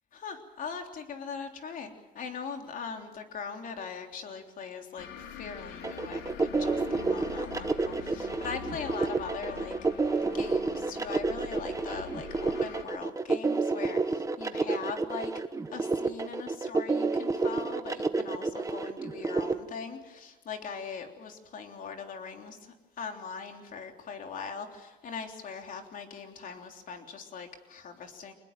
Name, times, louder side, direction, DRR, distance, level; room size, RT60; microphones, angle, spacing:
voice 1, 0.1-15.3 15.7-28.3, left 5 dB, 55° left, 4 dB, 3.5 m, -41 dB
sound 1, 5.0-12.8, left 9 dB, 75° left, 2.6 m, -44 dB
sound 2, 5.8-19.5, right 3 dB, 20° right, 1.3 m, -29 dB
25.0 x 20.5 x 7.5 m, 1.1 s
cardioid pair, 110°, 17 cm